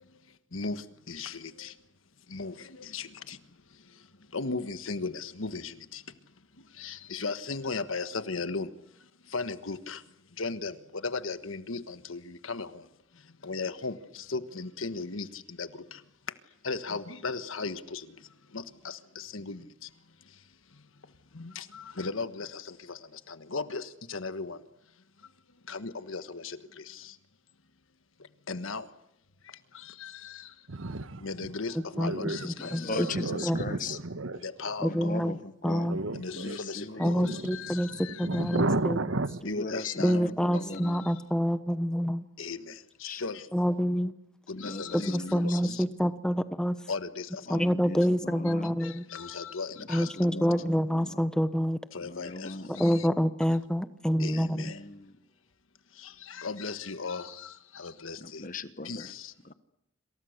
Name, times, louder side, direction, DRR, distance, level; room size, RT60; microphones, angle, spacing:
voice 1, 0.5-1.7 2.3-3.4 4.3-6.0 6.8-8.7 9.3-10.0 10.4-12.8 13.4-16.0 16.6-18.1 18.5-19.7 21.3-24.6 25.7-27.1 28.5-28.9 29.7-30.5 31.2-33.2 34.4-35.1 36.1-38.6 39.4-40.2 40.5-41.1 42.4-43.4 44.5-45.8 46.9-47.6 48.8-50.5 51.9-53.1 54.2-54.8 56.0-58.4 58.8-59.3, left 4 dB, 85° left, 1.4 m, -37 dB
voice 2, 30.7-31.5 31.9-34.4 35.8-36.6 37.0-39.4, right 2 dB, 90° right, 1.3 m, -33 dB
voice 3, 32.0-33.6 34.8-35.4 35.6-36.0 37.0-39.0 40.0-42.2 43.5-44.1 45.1-46.8 47.5-49.0 49.9-51.8 52.8-54.7, equal, 5° left, 1.0 m, -27 dB
voice 4, 32.6-34.0 34.8-35.9 36.3-37.1 39.4-41.1 43.1-43.2 44.5-45.8 47.5-48.8 49.8-51.2 52.0-53.0 54.3-55.2 58.2-59.1 59.4-59.5, left 2 dB, 40° left, 1.3 m, -39 dB
28.0 x 27.0 x 6.6 m
head